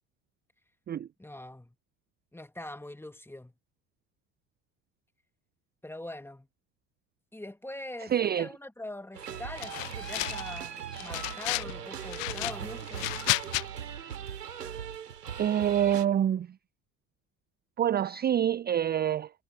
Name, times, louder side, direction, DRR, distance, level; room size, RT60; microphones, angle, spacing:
voice 1, 1.2-1.7 2.3-3.5 5.8-6.5 7.3-13.1, left 1 dB, 5° left, 2.1 m, -43 dB
voice 2, 8.1-8.5 15.4-16.5 17.8-19.3, right 10 dB, 20° right, 0.6 m, -26 dB
sound 1, 9.1-16.1, right 8 dB, 80° right, 2.6 m, -39 dB
sound 2, 9.6-10.6 10.9-11.7 12.1-13.6, left 27 dB, 60° left, 0.6 m, -32 dB
figure-of-eight pair, 60°, 48 cm